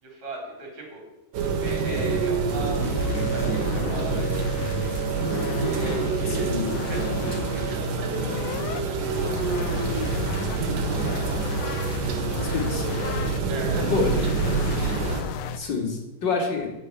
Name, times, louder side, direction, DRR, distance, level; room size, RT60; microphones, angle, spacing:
voice 1, 0.0-1.0 1.6-4.8 5.6-11.4 13.5-15.4, right 1 dB, 60° right, 0 dB, 5.4 m, -40 dB
sound 1, 1.3-15.2, right 4 dB, 75° right, 3.2 m, -26 dB
sound 2, 2.5-8.8 9.1-15.6, left 6 dB, 70° left, 1.7 m, -35 dB
voice 2, 6.3-6.7 12.4-13.3 13.9-14.1 15.6-16.7, left 4 dB, 35° left, 1 dB, 3.0 m, -28 dB
13.0 x 6.9 x 9.5 m, 1.0 s
omnidirectional pair, 3.7 m